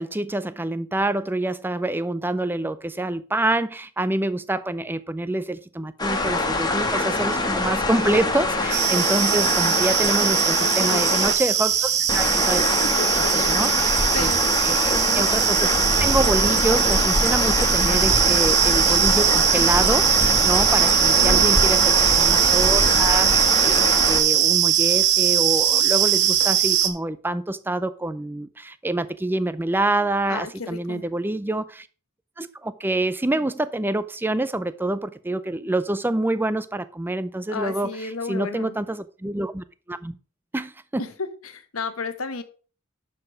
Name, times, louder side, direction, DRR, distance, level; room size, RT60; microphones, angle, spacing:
voice 1, 0.0-12.6 13.3-14.3 14.6-15.7 16.0-31.9 32.4-40.1 40.5-41.0, right 1 dB, 10° right, 0.5 m, -26 dB
sound 1, 6.0-11.3 12.1-24.2, left 2 dB, 20° left, 1.3 m, -24 dB
sound 2, 8.7-26.9, right 9 dB, 50° right, 1.1 m, -20 dB
voice 2, 10.6-11.3 12.8-13.1 13.3-13.6 14.1-14.5 21.2-21.5 30.3-31.0 37.5-38.7 41.0-42.4, left 4 dB, 70° left, 1.2 m, -32 dB
11.0 x 4.9 x 4.8 m
head